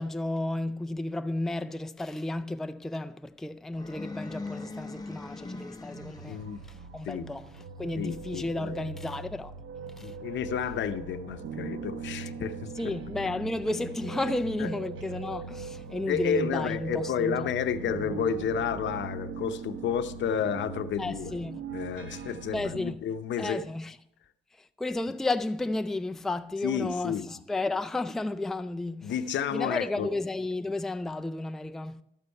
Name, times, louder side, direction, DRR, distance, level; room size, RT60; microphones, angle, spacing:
voice 1, 0.0-6.4 6.7-7.4 7.8-9.5 10.0-10.1 12.8-17.5 21.0-21.6 22.5-23.0 23.4-23.9 24.8-29.1 29.5-32.0, left 2 dB, ahead, 0.4 m, -32 dB
sound 1, 3.7-6.6, left 3 dB, 20° left, 0.9 m, -40 dB
sound 2, 5.9-23.0, right 5 dB, 75° right, 1.0 m, -40 dB
voice 2, 6.3-6.6 7.0-7.3 8.0-8.8 10.0-12.9 14.6-14.7 16.1-21.3 21.7-23.7 26.6-27.3 29.0-30.1, left 7 dB, 70° left, 0.7 m, -31 dB
12.0 x 8.4 x 4.5 m
cardioid pair, 90°, 20 cm